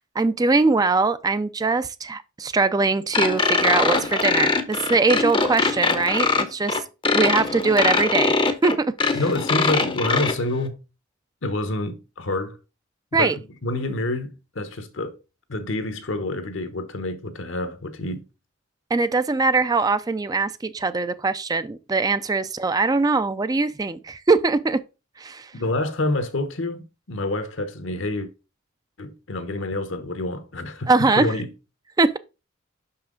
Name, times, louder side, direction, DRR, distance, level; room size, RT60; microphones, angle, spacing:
voice 1, 0.2-6.8 7.1-8.3 8.6-9.2 13.1-13.4 18.9-24.8 25.2-25.5 30.9-31.3 32.0-32.2, right 3 dB, 20° right, 0.3 m, -22 dB
sound 1, 3.1-10.3, left 4 dB, 25° left, 0.6 m, -22 dB
voice 2, 9.1-10.8 11.4-12.6 13.1-15.2 15.5-18.2 25.5-28.3 29.0-30.9 31.2-31.5, left 2 dB, 65° left, 1.0 m, -27 dB
5.8 x 5.6 x 3.8 m
head